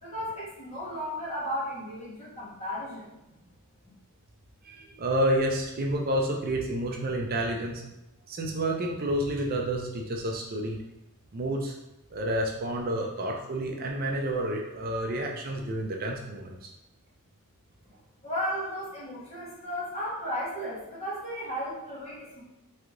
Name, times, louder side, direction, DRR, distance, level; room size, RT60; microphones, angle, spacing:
voice 1, 0.0-3.1 18.2-22.4, equal, 30° left, -6 dB, 1.4 m, -34 dB
voice 2, 4.6-7.8 8.3-10.8 11.3-11.7 12.1-16.7, right 1 dB, 40° right, 1 dB, 0.5 m, -29 dB
3.6 x 3.3 x 3.7 m, 0.93 s
head